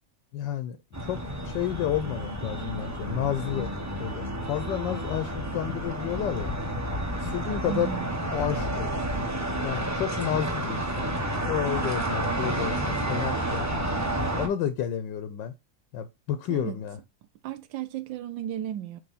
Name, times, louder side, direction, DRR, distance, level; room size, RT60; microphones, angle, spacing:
voice 1, 0.3-0.8 1.0-3.7 4.0-6.5 7.2-7.9 8.3-11.1 11.4-13.7 14.4-15.5 15.9-17.0, left 10 dB, 80° left, 1.4 m, -31 dB
sound 1, 0.9-14.5, right 1 dB, 10° right, 1.1 m, -30 dB
voice 2, 7.7-8.4 16.5-16.8 17.4-19.0, right 11 dB, 90° right, 1.4 m, -34 dB
9.2 x 3.4 x 4.1 m
omnidirectional pair, 2.0 m